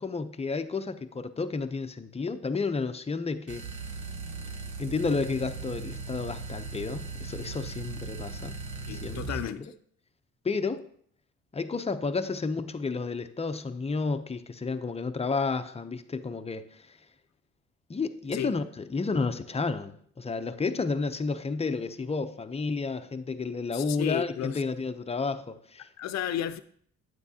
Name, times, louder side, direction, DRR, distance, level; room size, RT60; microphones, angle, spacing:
voice 1, 0.0-3.7 4.8-8.6 8.9-9.7 10.4-10.9 11.5-17.0 17.9-25.9, left 4 dB, 20° left, 0.6 m, -31 dB
sound 1, 3.5-9.5, right 4 dB, 75° right, 1.0 m, -38 dB
voice 2, 8.9-9.7 18.3-18.5 23.7-24.6 26.0-26.6, left 10 dB, 60° left, 0.6 m, -33 dB
9.2 x 8.1 x 2.8 m
cardioid pair, 90°, 30 cm